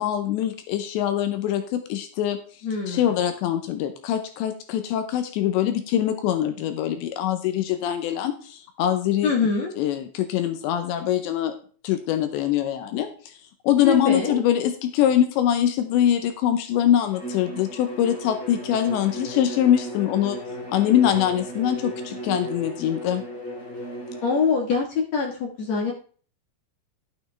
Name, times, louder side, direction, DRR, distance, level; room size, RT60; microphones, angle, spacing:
voice 1, 0.0-9.3 9.8-11.5 11.8-13.4 13.6-20.4 20.7-23.2, left 10 dB, 80° left, 7 dB, 3.1 m, -23 dB
voice 2, 2.6-3.1 9.2-9.7 13.8-14.4 24.2-25.9, left 5 dB, 60° left, 0 dB, 1.9 m, -24 dB
Bowed string instrument, 17.1-24.5, right 1 dB, 20° left, 5.6 m, -35 dB
11.5 x 8.5 x 3.4 m, 0.41 s
omnidirectional pair, 5.1 m